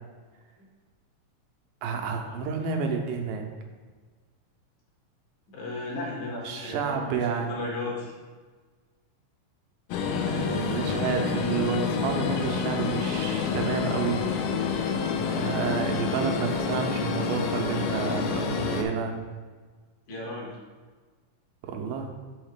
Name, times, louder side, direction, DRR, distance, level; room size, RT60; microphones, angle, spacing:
voice 1, 1.8-3.5 6.4-7.7 10.3-14.2 15.3-19.2 21.6-22.1, right 6 dB, 85° right, 3 dB, 2.3 m, -30 dB
voice 2, 5.5-8.1 20.1-20.5, left 2 dB, 65° left, -3 dB, 2.7 m, -35 dB
sound 1, 9.9-18.8, left 5 dB, 80° left, 2.1 m, -28 dB
6.3 x 5.5 x 3.6 m, 1.4 s
omnidirectional pair, 3.8 m